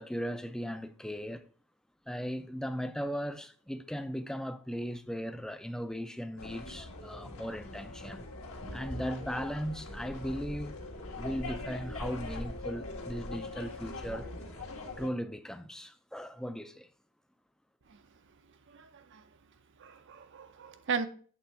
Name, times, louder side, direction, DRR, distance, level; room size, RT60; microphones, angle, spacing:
voice 1, 0.0-1.5 2.1-8.3 8.7-10.8 11.1-14.3 15.0-16.9, equal, 5° left, 0.5 m, -37 dB
sound 1, 6.4-15.1, left 2 dB, 70° left, 1.7 m, -42 dB
voice 2, 18.7-19.3 19.8-21.1, right 5 dB, 55° right, 0.7 m, -37 dB
8.3 x 3.6 x 5.5 m
head